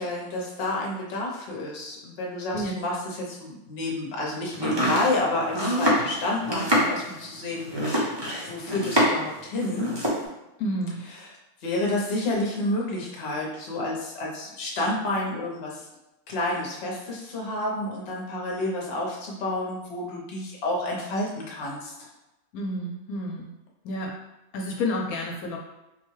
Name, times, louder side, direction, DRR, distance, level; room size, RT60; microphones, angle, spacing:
voice 1, 0.0-8.1 8.4-10.0 11.2-15.9 16.3-22.1, left 2 dB, 50° left, -2 dB, 0.9 m, -30 dB
Domestic sounds home sounds, 4.5-9.3 9.6-10.2, equal, 25° right, 0.6 m, -25 dB
voice 2, 10.6-11.0 22.5-23.5 23.8-24.1 24.5-25.6, left 1 dB, 80° left, 0 dB, 1.1 m, -30 dB
4.1 x 2.2 x 3.1 m, 0.97 s
omnidirectional pair, 1.5 m